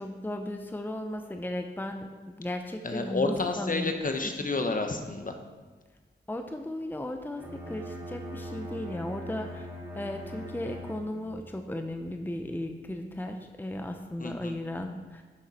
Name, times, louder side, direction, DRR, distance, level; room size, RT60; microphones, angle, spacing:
voice 1, 0.0-2.1 2.4-4.0 6.3-9.7 9.9-15.2, left 1 dB, 10° left, 5 dB, 0.8 m, -36 dB
voice 2, 2.8-5.4 14.2-14.5, left 3 dB, 45° left, 5 dB, 1.3 m, -30 dB
Bowed string instrument, 7.3-11.4, equal, 10° right, 3.3 m, -41 dB
11.5 x 6.5 x 4.4 m, 1.4 s
cardioid pair, 45°, 20 cm